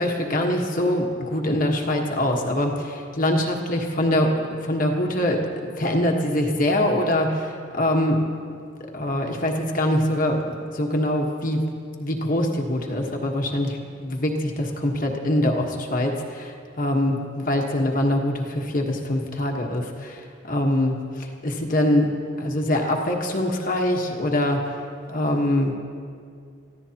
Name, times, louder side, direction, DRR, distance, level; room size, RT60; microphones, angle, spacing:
voice 1, 0.0-8.2 8.9-11.6 12.0-22.1 22.4-24.7 25.1-25.7, left 1 dB, 45° left, 1 dB, 1.4 m, -24 dB
25.0 x 15.0 x 3.0 m, 2.3 s
head